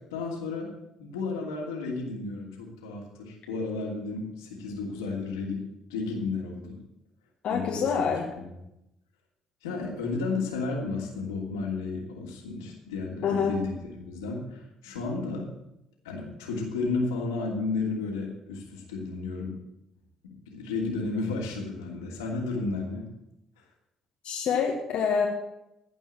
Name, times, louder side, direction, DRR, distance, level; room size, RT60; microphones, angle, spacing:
voice 1, 0.1-0.7 1.0-5.6 5.9-6.8 7.5-7.9 8.4-8.5 9.6-13.7 14.0-15.5 16.0-19.5 20.5-23.1, left 3 dB, 85° left, -1 dB, 2.8 m, -32 dB
voice 2, 7.4-8.3 13.2-13.6 24.2-25.3, left 6 dB, 60° left, -1 dB, 1.7 m, -26 dB
15.0 x 5.5 x 8.9 m, 0.86 s
hypercardioid pair, 50°, 2 cm